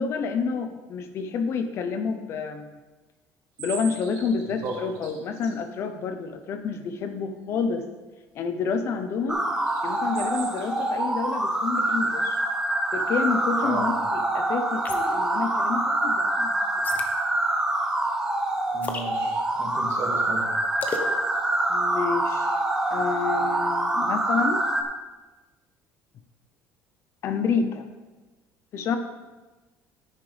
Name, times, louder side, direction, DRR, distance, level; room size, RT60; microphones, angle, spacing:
voice 1, 0.0-2.8 3.6-7.8 8.3-9.4 9.8-12.4 12.9-14.8 15.1-16.6 21.7-22.6 22.9-24.6 27.2-27.8 28.7-29.0, left 5 dB, 45° left, 8 dB, 0.7 m, -29 dB
sound 1, 3.6-5.5 9.6-10.9, right 6 dB, 75° right, 2.2 m, -39 dB
sound 2, 9.3-24.8, right 1 dB, 10° right, 0.8 m, -25 dB
sound 3, 14.8-15.3 16.8-17.1 18.8-19.1 20.8-21.1, left 4 dB, 25° left, 1.0 m, -33 dB
voice 2, 18.7-20.5, right 3 dB, 50° right, 0 dB, 2.1 m, -34 dB
9.9 x 9.9 x 3.4 m, 1.2 s
cardioid pair, 150°, 6 cm